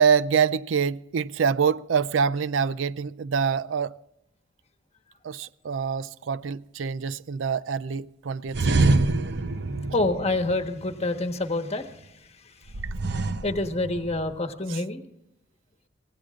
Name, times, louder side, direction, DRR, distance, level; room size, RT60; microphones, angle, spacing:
voice 1, 0.0-3.9 5.2-9.0 12.8-12.9 14.7-14.8, right 6 dB, 75° right, 0.4 m, -25 dB
sound 1, 8.5-11.2 12.7-14.4, right 2 dB, 60° right, 0.8 m, -26 dB
voice 2, 9.9-12.1 13.4-15.0, left 2 dB, 35° left, 1.3 m, -27 dB
24.5 x 17.0 x 2.5 m
head